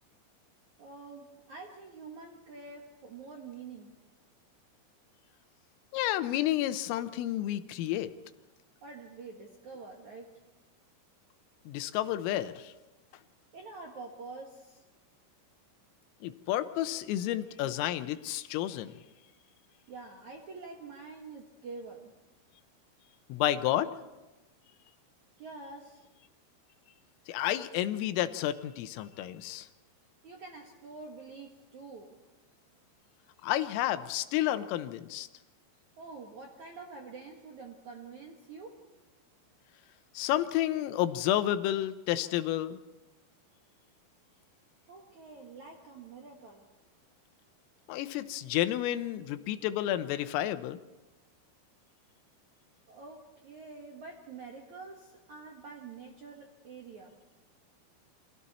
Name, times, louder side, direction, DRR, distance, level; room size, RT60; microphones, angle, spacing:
voice 1, 0.8-3.9 8.8-10.3 13.5-14.8 19.9-22.1 25.4-26.0 30.2-32.2 36.0-38.8 44.9-46.7 52.9-57.2, right 4 dB, 60° right, 0 dB, 2.0 m, -47 dB
voice 2, 5.9-8.1 11.7-12.7 16.2-18.9 23.3-23.9 27.3-29.7 33.4-35.3 40.2-42.8 47.9-50.8, left 13 dB, 85° left, 11 dB, 3.5 m, -31 dB
29.5 x 24.5 x 4.2 m, 1.1 s
omnidirectional pair, 5.9 m